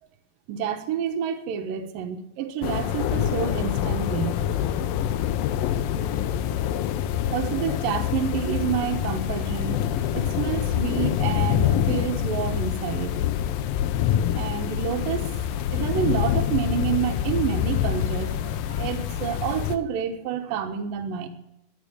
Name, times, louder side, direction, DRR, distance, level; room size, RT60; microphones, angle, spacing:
voice 1, 0.5-4.4 7.3-13.2 14.3-15.3 15.7-21.3, right 8 dB, 70° right, 5 dB, 2.8 m, -29 dB
sound 1, 2.6-19.8, left 10 dB, 80° left, 2.4 m, -26 dB
11.5 x 10.0 x 9.9 m, 0.84 s
omnidirectional pair, 4.2 m